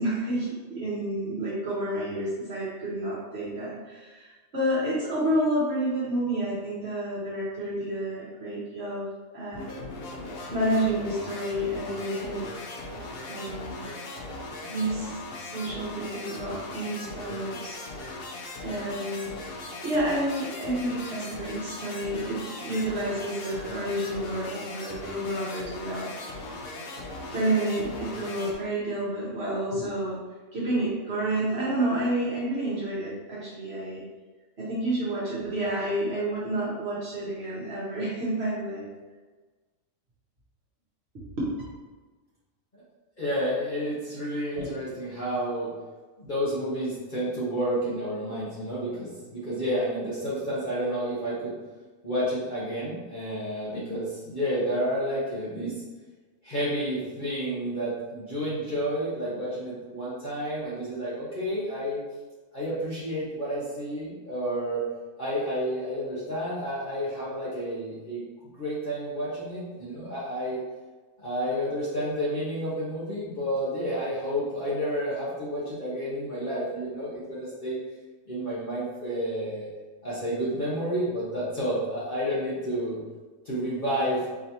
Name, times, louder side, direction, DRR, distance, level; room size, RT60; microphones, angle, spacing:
voice 1, 0.0-9.1 9.3-9.7 10.5-12.5 13.3-13.8 14.7-17.8 18.6-19.3 19.8-26.1 27.3-30.2 30.5-34.0 34.6-38.8 41.4-41.5 44.5-44.7, right 1 dB, 55° right, -8 dB, 1.3 m, -29 dB
sound 1, 9.5-28.5, left 2 dB, 55° left, 0.7 m, -39 dB
voice 2, 43.2-45.7 46.2-51.5 52.0-55.8 56.4-62.0 62.5-64.8 65.2-68.2 68.5-70.6 71.2-77.8 78.3-79.7 80.0-83.0 83.4-84.3, equal, 40° left, -10 dB, 1.2 m, -30 dB
4.7 x 3.1 x 2.8 m, 1.3 s
omnidirectional pair, 1.4 m